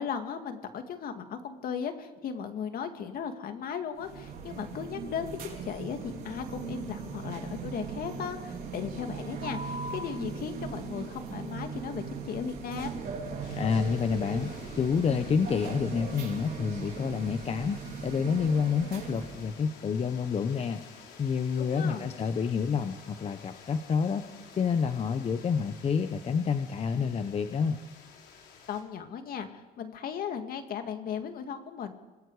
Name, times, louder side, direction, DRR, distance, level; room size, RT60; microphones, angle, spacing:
voice 1, 0.0-13.0 21.6-22.1 28.7-31.9, left 7 dB, 60° left, 6 dB, 2.3 m, -36 dB
sound 1, 4.0-19.6, right 5 dB, 60° right, 5.1 m, -39 dB
sound 2, 13.4-28.8, left 6 dB, 75° left, 4.4 m, -52 dB
voice 2, 13.5-24.2 24.6-27.8, left 6 dB, 35° left, 8 dB, 1.0 m, -29 dB
27.0 x 20.0 x 5.0 m, 1.2 s
cardioid pair, 110°, 17 cm